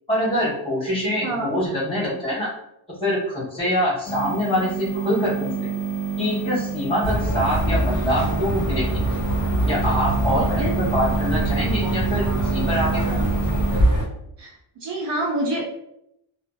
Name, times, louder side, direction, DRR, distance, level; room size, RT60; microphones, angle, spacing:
voice 1, 0.1-2.5 3.0-5.7 6.2-8.9 9.7-13.2, equal, 10° left, -6 dB, 1.0 m, -24 dB
voice 2, 1.2-1.5 10.3-10.7 14.4-15.7, right 1 dB, 60° right, -2 dB, 0.5 m, -27 dB
sound 1, 4.1-13.8, right 6 dB, 40° left, 0.6 m, -29 dB
sound 2, 7.0-14.0, right 1 dB, 40° right, 1.1 m, -23 dB
2.5 x 2.1 x 2.4 m, 0.79 s
wide cardioid pair, 140°, 48 cm